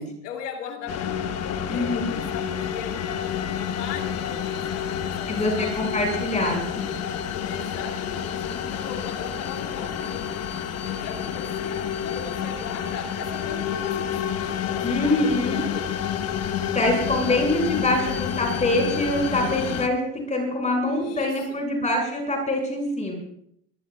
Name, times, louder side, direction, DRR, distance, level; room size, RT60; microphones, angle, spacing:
voice 1, 0.0-6.1 7.4-10.5 10.8-16.0 17.1-18.0 20.9-21.6, left 7 dB, 75° left, 3 dB, 3.0 m, -39 dB
sound 1, 0.9-19.9, left 8 dB, 35° left, 1.2 m, -29 dB
voice 2, 1.7-2.1 5.3-6.9 14.8-15.6 16.7-20.0 20.3-23.2, left 1 dB, 15° left, 1 dB, 6.3 m, -24 dB
23.0 x 20.0 x 2.4 m, 0.70 s
hypercardioid pair, 115°, 47 cm